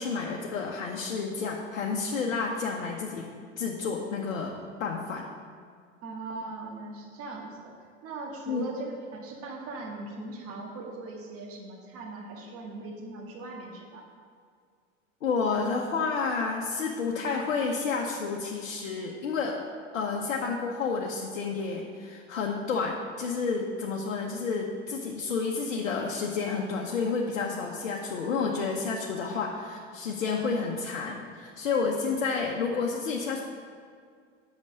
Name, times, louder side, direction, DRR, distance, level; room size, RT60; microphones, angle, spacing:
voice 1, 0.0-3.3 3.6-4.5 4.8-5.2 8.5-8.6 15.2-19.6 19.9-33.4, left 4 dB, 65° left, -1 dB, 1.0 m, -30 dB
voice 2, 6.0-7.7 8.0-14.0, right 3 dB, 35° right, 0 dB, 1.6 m, -39 dB
8.4 x 6.2 x 6.4 m, 2.1 s
figure-of-eight pair, 85°, 38 cm